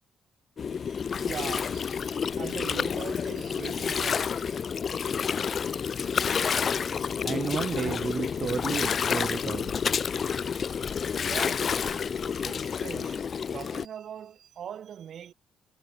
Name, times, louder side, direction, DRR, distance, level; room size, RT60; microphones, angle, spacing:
Gurgling, 0.6-13.8, left 6 dB, 45° left, 0.9 m, -29 dB
voice 1, 0.7-4.7 10.2-10.5 11.2-11.9 12.3-13.2 13.5-15.3, right 9 dB, 60° right, 1.1 m, -42 dB
voice 2, 7.2-9.8, right 6 dB, 45° right, 0.4 m, -32 dB
cardioid pair, 90°, 0 cm